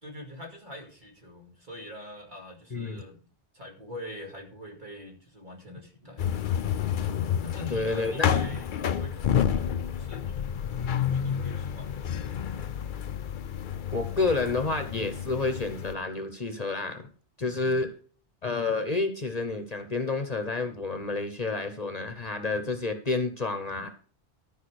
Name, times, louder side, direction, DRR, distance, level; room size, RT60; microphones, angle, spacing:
voice 1, 0.0-3.3 3.5-6.6 7.4-9.7 9.9-10.6 10.9-12.9, equal, 45° right, 0 dB, 2.8 m, -44 dB
voice 2, 2.7-3.0 7.7-8.3 13.9-17.1 17.4-17.9 18.4-23.9, left 3 dB, 35° left, 7 dB, 1.1 m, -29 dB
sound 1, 6.2-15.9, left 8 dB, 55° left, 0.7 m, -30 dB
13.0 x 5.3 x 6.3 m, 0.43 s
omnidirectional pair, 1.1 m